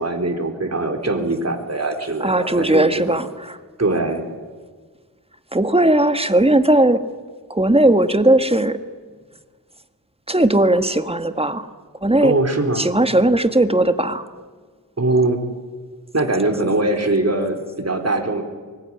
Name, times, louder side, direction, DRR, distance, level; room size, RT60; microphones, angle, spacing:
voice 1, 0.0-3.2 3.8-4.2 12.2-12.9 15.0-15.4 16.1-18.4, right 2 dB, 45° right, 4 dB, 3.8 m, -21 dB
voice 2, 2.2-3.6 5.5-7.0 7.5-8.8 10.3-11.7 12.0-12.3 12.7-14.2, right 1 dB, 15° right, 9 dB, 1.7 m, -17 dB
24.0 x 21.0 x 9.9 m, 1.5 s
wide cardioid pair, 65°, 35 cm